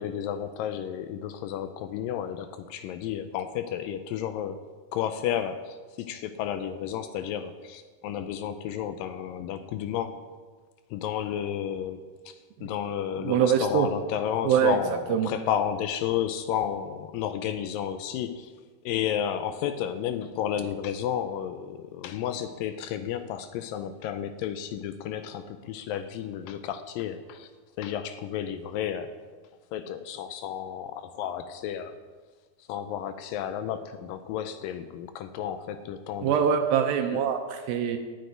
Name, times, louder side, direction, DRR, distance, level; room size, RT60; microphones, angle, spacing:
voice 1, 0.0-4.6 4.9-10.2 10.9-12.3 12.6-18.5 18.9-27.5 27.8-29.2 29.7-32.0 32.7-36.5 37.1-37.2, left 9 dB, 85° left, 10 dB, 2.0 m, -32 dB
voice 2, 13.2-13.9 14.4-14.8 15.1-15.3 36.2-38.0, right 8 dB, 75° right, 6 dB, 2.4 m, -24 dB
8.8 x 8.1 x 9.1 m, 1.4 s
omnidirectional pair, 4.5 m